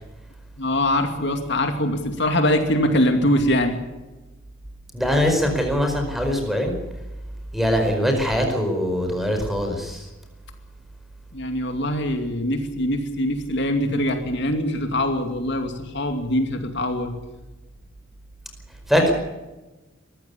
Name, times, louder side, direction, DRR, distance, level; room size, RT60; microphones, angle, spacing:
voice 1, 0.6-3.8 11.3-17.1, left 1 dB, 60° left, 5 dB, 2.5 m, -23 dB
voice 2, 4.9-6.7 7.5-10.1 18.9-19.1, equal, ahead, 3 dB, 4.9 m, -22 dB
23.0 x 15.0 x 8.6 m, 1.1 s
head